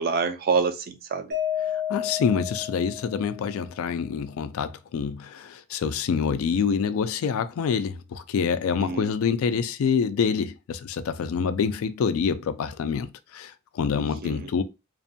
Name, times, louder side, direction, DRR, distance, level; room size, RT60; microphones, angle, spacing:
voice 1, 0.0-1.3 8.8-9.1 14.0-14.5, right 5 dB, 40° right, 0.3 m, -27 dB
Mallet percussion, 1.3-3.6, left 10 dB, 60° right, 0.9 m, -31 dB
voice 2, 1.7-14.6, left 6 dB, 70° left, 0.3 m, -26 dB
2.5 x 2.2 x 2.6 m
head